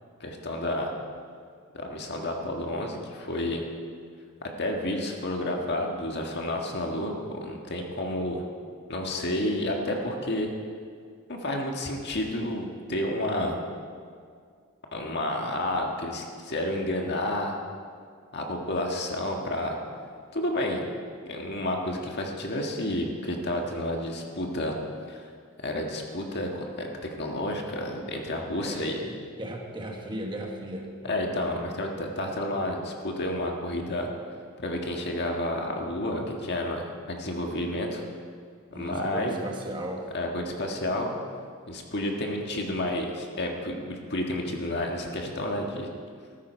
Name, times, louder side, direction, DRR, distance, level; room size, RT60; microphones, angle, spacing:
voice 1, 0.2-0.9 1.7-3.6 4.6-8.4 8.9-10.5 11.3-13.5 14.9-17.6 18.3-19.8 20.3-20.8 21.3-24.7 25.1-25.2 25.6-26.9 27.2-28.9 31.0-34.1 34.6-38.0 38.7-39.4 40.1-41.2 41.7-45.9, left 1 dB, 50° left, 1 dB, 1.7 m, -30 dB
voice 2, 28.6-31.2 36.3-36.4 38.7-40.1, right 1 dB, 20° right, 1 dB, 1.4 m, -37 dB
14.5 x 13.5 x 4.5 m, 2.2 s
head